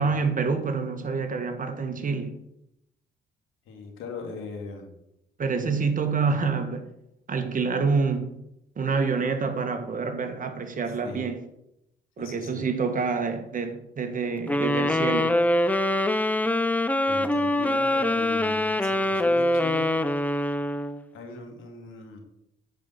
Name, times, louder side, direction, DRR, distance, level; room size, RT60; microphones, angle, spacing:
voice 1, 0.0-2.4 5.4-6.9 7.3-8.3 8.8-11.4 12.2-15.3, right 4 dB, 40° right, 6 dB, 1.7 m, -27 dB
voice 2, 3.7-4.9 11.0-11.3 12.2-12.7 17.1-20.0 21.1-22.2, left 4 dB, 85° left, 3 dB, 2.4 m, -39 dB
sound 1, 14.5-21.0, left 1 dB, 10° left, 0.6 m, -24 dB
10.5 x 5.3 x 7.1 m, 0.82 s
cardioid pair, 90°, 20 cm